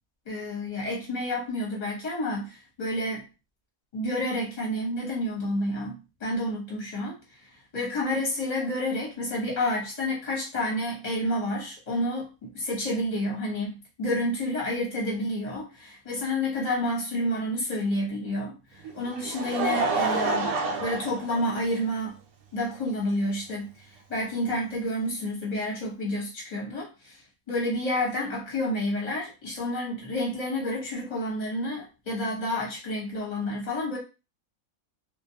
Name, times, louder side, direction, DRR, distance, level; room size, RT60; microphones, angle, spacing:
voice 1, 0.3-3.3 3.9-7.5 7.7-20.5 20.8-22.2 22.5-27.2 27.5-34.0, left 1 dB, 30° left, -3 dB, 0.9 m, -30 dB
Laughter, 18.8-22.1 22.9-23.0 24.4-24.5, right 3 dB, 75° right, 1.0 m, -28 dB
2.6 x 2.2 x 2.7 m, 0.29 s
omnidirectional pair, 1.6 m